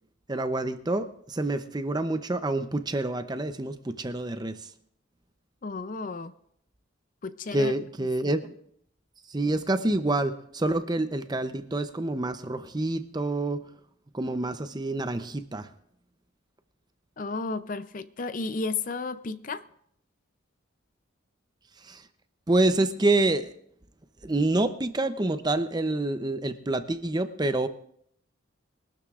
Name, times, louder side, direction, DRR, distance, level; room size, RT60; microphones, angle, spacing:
voice 1, 0.3-4.7 7.5-8.5 9.3-13.6 14.1-15.7 21.8-22.0 22.5-23.5 24.2-27.7, right 2 dB, 20° right, 10 dB, 0.6 m, -27 dB
voice 2, 5.6-6.3 7.2-7.7 17.2-19.6, left 3 dB, 40° left, 12 dB, 0.5 m, -33 dB
23.0 x 12.5 x 2.4 m, 0.69 s
head